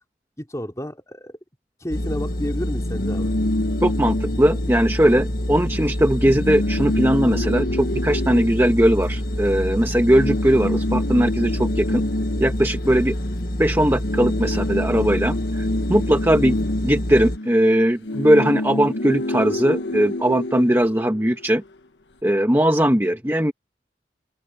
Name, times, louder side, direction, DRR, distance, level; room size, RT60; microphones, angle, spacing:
voice 1, 0.4-1.3 1.8-3.3 16.6-16.8, equal, 20° left, 3.3 m, -31 dB
sound 1, 1.9-17.4, equal, 55° left, 1.7 m, -27 dB
sound 2, 2.8-5.4 5.7-5.8 6.1-9.5 10.0-13.6 13.9-21.5, left 1 dB, 85° left, 1.4 m, -28 dB
voice 2, 3.8-12.0 12.4-13.1 13.6-16.6 16.8-21.6 22.2-23.5, equal, 15° right, 1.4 m, -19 dB
open air
head